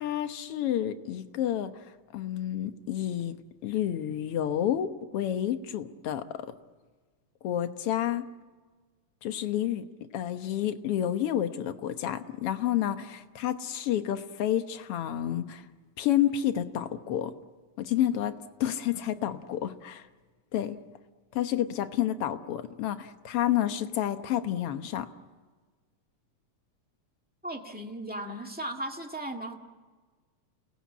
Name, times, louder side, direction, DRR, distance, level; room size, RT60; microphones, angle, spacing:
voice 1, 0.0-1.7 2.1-3.3 3.6-6.5 7.4-8.3 9.2-9.9 10.1-15.6 16.0-17.3 17.8-20.0 20.5-20.8 21.3-25.1, left 11 dB, 60° left, 9 dB, 1.8 m, -29 dB
voice 2, 27.4-29.6, right 1 dB, 5° right, 2 dB, 1.2 m, -36 dB
29.5 x 19.5 x 8.5 m, 1.4 s
omnidirectional pair, 3.4 m